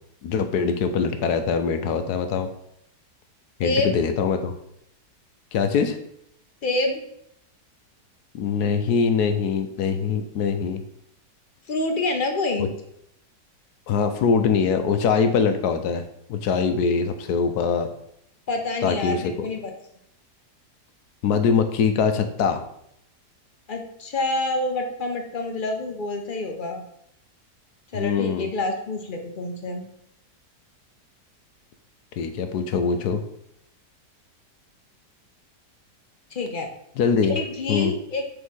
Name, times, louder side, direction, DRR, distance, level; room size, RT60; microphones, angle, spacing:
voice 1, 0.2-2.5 3.6-4.5 5.5-6.0 8.3-10.8 12.6-12.7 13.9-16.0 16.3-17.9 18.8-19.5 21.2-22.6 27.9-28.5 32.2-33.2 37.0-37.3 37.7-37.9, left 6 dB, 75° left, 8 dB, 1.1 m, -23 dB
voice 2, 3.6-3.9 6.6-7.0 11.7-12.7 18.5-19.7 23.7-26.8 27.9-29.9 36.3-36.7 37.3-38.2, left 2 dB, 45° left, 4 dB, 0.7 m, -27 dB
6.2 x 3.6 x 5.4 m, 0.75 s
omnidirectional pair, 1.8 m